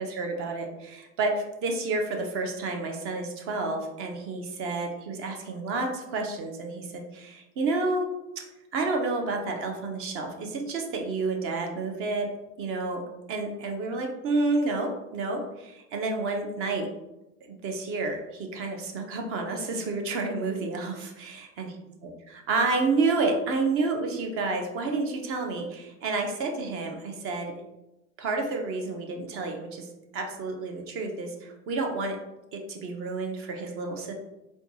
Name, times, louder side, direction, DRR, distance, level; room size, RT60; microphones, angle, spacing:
voice 1, 0.1-8.1 8.7-12.3 12.6-13.0 13.3-16.9 17.6-21.7 22.3-27.5 28.2-29.9 30.1-32.2 32.5-34.1, right 3 dB, 35° right, 3 dB, 0.7 m, -30 dB
4.4 x 2.3 x 2.8 m, 0.95 s
hypercardioid pair, 115°, 40 cm